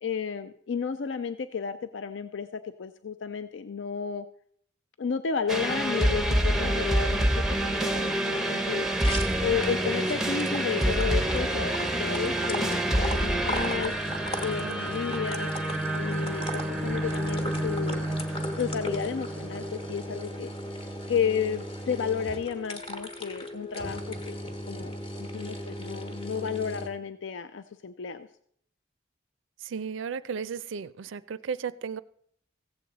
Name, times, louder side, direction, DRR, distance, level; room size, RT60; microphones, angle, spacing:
voice 1, 0.0-4.3 5.0-8.8 9.4-13.9 14.4-15.5 15.9-18.1 18.6-20.5 21.1-24.4 24.7-24.9 25.2-28.3, left 6 dB, 80° left, 11 dB, 0.5 m, -32 dB
sound 1, 5.5-20.2, right 1 dB, ahead, 0.6 m, -28 dB
sound 2, 8.1-26.9, equal, 30° left, 1.1 m, -37 dB
voice 2, 29.6-32.0, right 6 dB, 90° right, 17 dB, 0.4 m, -35 dB
15.5 x 7.8 x 3.9 m, 0.65 s
head